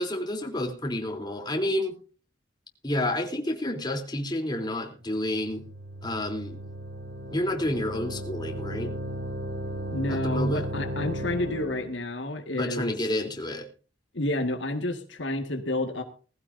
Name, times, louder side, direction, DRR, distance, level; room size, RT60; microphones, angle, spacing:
voice 1, 0.0-1.9 2.8-5.6 6.0-6.6 7.3-8.9 10.1-10.6 12.6-13.7, left 1 dB, 25° left, 3 dB, 3.5 m, -29 dB
sound 1, 5.1-12.0, equal, 65° right, 3.3 m, -35 dB
voice 2, 9.9-13.0 14.1-16.0, left 1 dB, 75° left, 5 dB, 1.9 m, -30 dB
20.5 x 15.0 x 2.7 m, 0.37 s
head